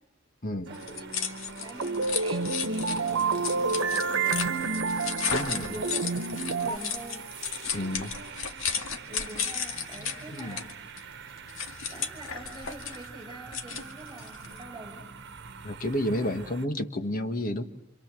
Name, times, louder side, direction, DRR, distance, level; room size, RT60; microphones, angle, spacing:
sound 1, 0.7-14.6, left 6 dB, 75° left, 2.2 m, -35 dB
voice 1, 0.7-1.2 1.5-4.6 5.5-6.1 6.5-7.3 9.1-10.7 11.8-15.1, right 1 dB, 20° right, 7 dB, 6.2 m, -44 dB
sound 2, 0.7-16.7, right 5 dB, 60° right, 1.3 m, -44 dB
sound 3, 1.8-6.8, right 4 dB, 85° right, 1.1 m, -29 dB
voice 2, 5.3-5.7 7.7-8.1 10.3-10.6 15.6-17.6, left 1 dB, 45° left, 7 dB, 1.6 m, -30 dB
27.5 x 26.5 x 7.6 m, 0.76 s
head